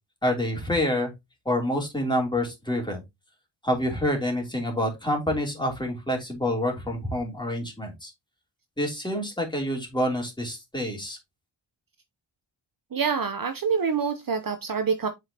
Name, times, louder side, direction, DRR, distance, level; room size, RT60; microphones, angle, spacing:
voice 1, 0.2-1.1 1.4-3.0 3.6-8.1 8.8-11.2, left 1 dB, 10° left, 3.0 m, -27 dB
voice 2, 12.9-15.1, right 6 dB, 50° right, 0.8 m, -26 dB
7.9 x 5.2 x 2.8 m
wide cardioid pair, 105°, 45 cm